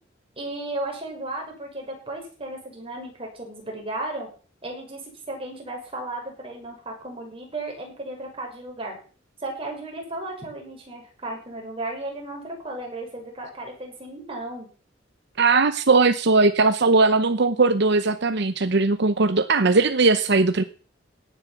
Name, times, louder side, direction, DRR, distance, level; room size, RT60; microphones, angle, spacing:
voice 1, 0.4-4.3 4.6-9.0 9.4-14.7, right 2 dB, 30° right, 0 dB, 6.4 m, -34 dB
voice 2, 15.4-20.6, right 3 dB, 65° right, 10 dB, 0.9 m, -19 dB
17.0 x 9.9 x 5.9 m, 0.41 s
head